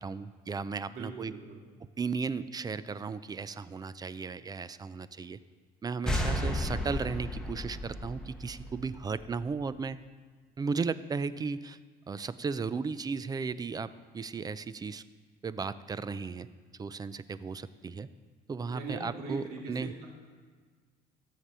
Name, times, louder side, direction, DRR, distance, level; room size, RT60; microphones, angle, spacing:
voice 1, 0.0-1.3 1.8-5.4 5.8-10.0 10.6-11.8 12.1-15.0 15.4-16.5 16.8-18.1 18.5-19.9, right 5 dB, 25° right, 15 dB, 0.4 m, -35 dB
voice 2, 0.9-1.6 18.7-20.1, right 4 dB, 70° right, -1 dB, 2.3 m, -41 dB
sound 1, 6.1-9.5, left 1 dB, 5° left, 1.4 m, -34 dB
13.0 x 7.5 x 5.5 m, 1.6 s
cardioid pair, 110°, 17 cm